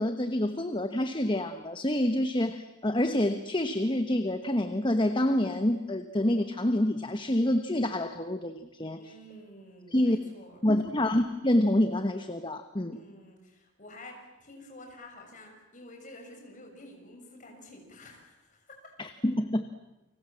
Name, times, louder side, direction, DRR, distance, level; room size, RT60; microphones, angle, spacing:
voice 1, 0.0-9.0 9.9-10.2 10.6-13.0 19.0-19.6, left 1 dB, 25° left, 9 dB, 1.2 m, -27 dB
voice 2, 9.0-10.6 12.9-18.9, left 1 dB, 40° left, 2 dB, 7.0 m, -50 dB
30.0 x 25.0 x 7.5 m, 1.0 s
head